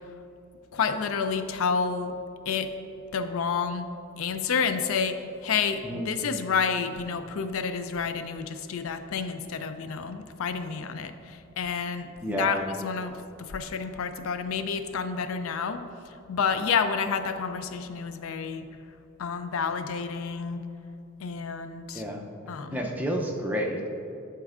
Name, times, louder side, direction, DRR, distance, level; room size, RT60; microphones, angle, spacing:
voice 1, 0.7-2.2 2.5-2.7 3.1-3.9 4.2-18.7 19.2-20.6 21.2-22.0 22.5-22.9, left 6 dB, 70° left, 9 dB, 0.4 m, -29 dB
voice 2, 12.2-12.6 21.9-22.2 22.7-23.9, equal, 10° right, 0 dB, 0.5 m, -30 dB
11.0 x 4.4 x 2.5 m, 2.7 s
head